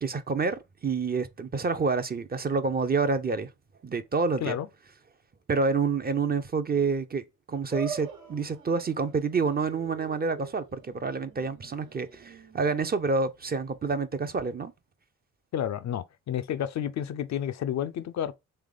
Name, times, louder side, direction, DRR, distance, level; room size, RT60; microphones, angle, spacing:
voice 1, 0.0-3.5 3.8-4.6 5.5-7.2 7.5-14.7, right 4 dB, 30° right, 0.5 m, -28 dB
sound 1, 7.7-14.1, right 6 dB, 90° right, 1.3 m, -45 dB
voice 2, 15.5-18.3, left 10 dB, 55° left, 0.4 m, -30 dB
3.4 x 3.2 x 3.7 m
cardioid pair, 65°, 34 cm